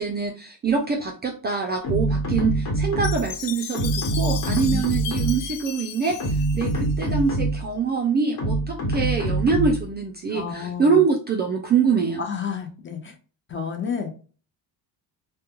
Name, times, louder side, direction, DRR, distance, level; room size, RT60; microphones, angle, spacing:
voice 1, 0.0-12.2, right 5 dB, 25° right, 2 dB, 0.3 m, -24 dB
sound 1, 1.8-3.4 3.7-5.5 6.1-7.7 8.4-9.9, right 2 dB, 60° left, 1.3 m, -25 dB
Chime, 3.0-7.4, left 9 dB, 90° left, 0.6 m, -36 dB
voice 2, 4.5-4.8 10.3-11.0 12.2-13.1 13.5-14.1, left 6 dB, 25° left, 4 dB, 0.6 m, -30 dB
2.2 x 2.2 x 2.9 m, 0.37 s
cardioid pair, 110°, 44 cm